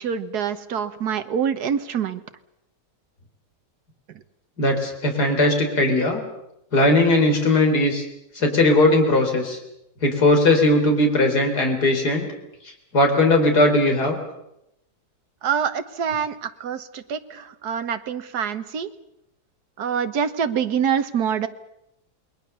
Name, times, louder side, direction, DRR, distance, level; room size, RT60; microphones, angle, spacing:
voice 1, 0.0-2.2 15.4-18.9 19.8-21.5, right 7 dB, 70° right, 10 dB, 1.7 m, -25 dB
voice 2, 4.6-6.2 6.7-8.0 8.3-9.6 10.0-12.3 12.9-14.2, left 2 dB, 75° left, 3 dB, 4.4 m, -18 dB
28.0 x 21.0 x 6.9 m, 0.84 s
omnidirectional pair, 1.7 m